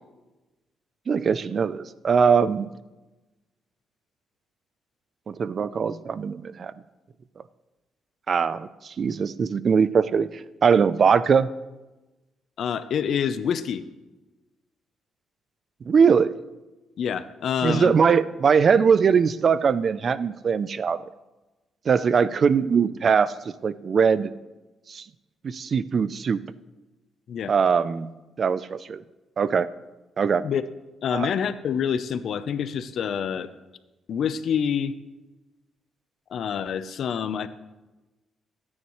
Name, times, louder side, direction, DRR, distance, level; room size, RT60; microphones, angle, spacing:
voice 1, 1.1-2.7 5.3-6.7 8.3-10.3 10.6-11.5 15.9-16.4 17.6-21.0 21.9-23.3 23.6-24.3 24.9-25.0 25.4-26.4 27.5-28.1 28.4-29.0 29.4-29.7 30.2-30.4 31.1-31.3, right 6 dB, 45° right, 16 dB, 0.5 m, -21 dB
voice 2, 12.6-13.8 17.0-18.0 27.3-27.5 30.4-30.6 31.0-33.5 34.1-34.9 36.3-37.5, left 8 dB, 65° left, 13 dB, 0.7 m, -27 dB
23.5 x 9.7 x 3.2 m, 1.1 s
cardioid pair, 90°, 0 cm